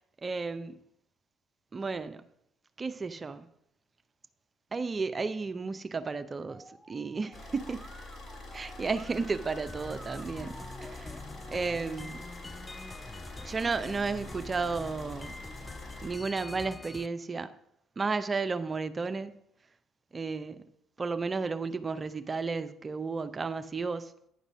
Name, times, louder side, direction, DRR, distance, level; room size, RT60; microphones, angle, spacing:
voice 1, 0.2-0.7 1.7-2.2 2.8-3.5 4.7-7.8 8.5-11.2 11.5-12.3 13.4-15.3 16.0-17.5 18.0-19.3 20.1-20.7 21.0-24.1, right 4 dB, 35° right, 0.5 m, -33 dB
Musical instrument, 6.5-12.1, right 2 dB, 10° right, 0.9 m, -52 dB
Car / Idling, 7.3-16.1, left 2 dB, 60° left, 3.5 m, -45 dB
sound 1, 9.7-17.1, left 3 dB, 20° left, 0.4 m, -45 dB
9.8 x 4.0 x 6.1 m
hypercardioid pair, 55°, 0 cm